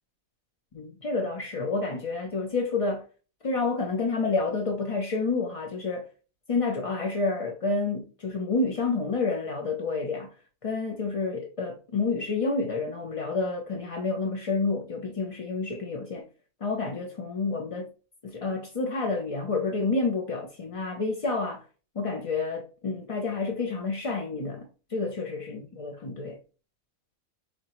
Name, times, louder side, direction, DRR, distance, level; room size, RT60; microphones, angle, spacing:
voice 1, 0.7-3.0 3.4-6.1 6.5-10.3 10.6-16.2 16.6-17.9 18.2-21.6 22.0-24.7 24.9-26.4, left 3 dB, 50° left, 0.4 m, -29 dB
4.3 x 3.8 x 2.9 m
omnidirectional pair, 1.5 m